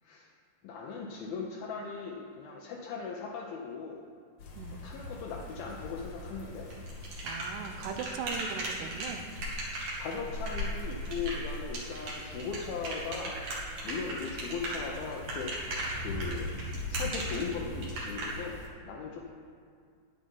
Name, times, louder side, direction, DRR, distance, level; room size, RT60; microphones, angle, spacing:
voice 1, 0.0-0.3 0.6-4.0 4.7-6.7 10.0-13.4 13.8-16.5 16.9-19.2, left 5 dB, 75° left, -2 dB, 2.5 m, -38 dB
sound 1, 4.4-18.7, left 1 dB, 55° left, 2.6 m, -41 dB
sound 2, 6.7-18.3, right 2 dB, 55° right, 3.1 m, -37 dB
voice 2, 7.2-9.2, right 7 dB, 90° right, 7 dB, 2.9 m, -39 dB
10.0 x 10.0 x 4.6 m, 2.3 s
omnidirectional pair, 4.7 m